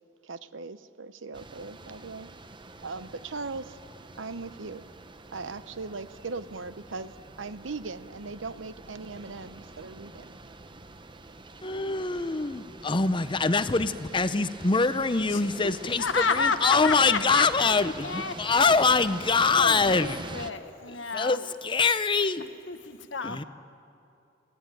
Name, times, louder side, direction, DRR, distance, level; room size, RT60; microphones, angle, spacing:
voice 1, 0.2-2.3 2.8-3.8 4.2-4.8 5.3-7.1 7.4-10.3, right 3 dB, 80° right, 13 dB, 0.9 m, -39 dB
sound 1, 1.3-20.5, right 2 dB, 25° right, 0.9 m, -45 dB
voice 2, 11.6-20.2 21.1-22.5 23.2-23.4, left 4 dB, 25° left, 13 dB, 0.7 m, -24 dB
voice 3, 16.0-18.7 19.6-21.4 22.7-23.4, left 5 dB, 75° left, 9 dB, 1.3 m, -31 dB
25.5 x 17.0 x 9.2 m, 2.6 s
head